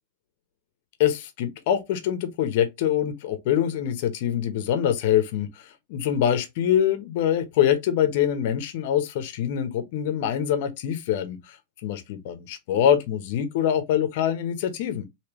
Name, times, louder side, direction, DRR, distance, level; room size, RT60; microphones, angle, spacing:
voice 1, 1.0-5.5 5.9-11.6 11.8-15.1, left 10 dB, 55° left, 0.8 m, -24 dB
3.3 x 2.8 x 2.9 m
supercardioid pair, 150°, 0 cm